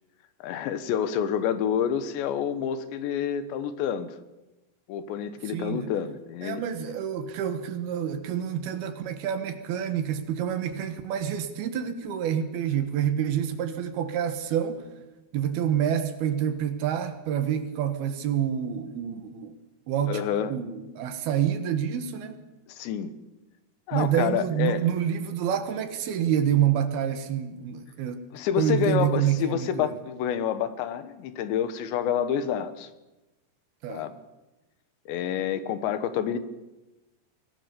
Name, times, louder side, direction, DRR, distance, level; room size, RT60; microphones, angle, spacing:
voice 1, 0.4-4.2 4.9-6.6 20.1-20.5 22.7-23.2 23.9-24.8 28.3-32.9 33.9-34.1 35.1-36.4, left 9 dB, 80° left, 12 dB, 3.5 m, -28 dB
voice 2, 5.5-5.9 6.4-14.9 15.3-19.5 19.9-20.2 20.5-22.4 23.9-28.3 28.6-29.9 33.8-34.0, right 9 dB, 70° right, 9 dB, 3.0 m, -27 dB
24.0 x 19.0 x 6.9 m, 1.0 s
omnidirectional pair, 5.1 m